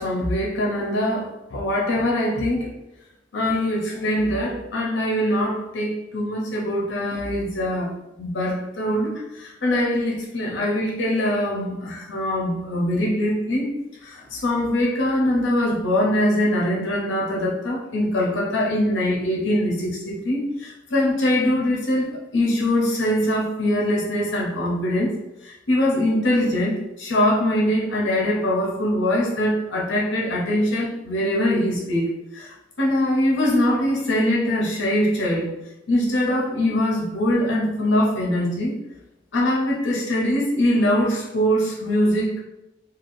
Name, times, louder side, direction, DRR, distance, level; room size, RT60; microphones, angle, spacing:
voice 1, 0.0-2.7 3.3-7.9 8.2-13.7 14.0-25.2 25.4-35.5 35.9-38.8 39.3-42.4, left 1 dB, 65° left, -2 dB, 0.7 m, -22 dB
3.3 x 2.3 x 2.6 m, 0.91 s
head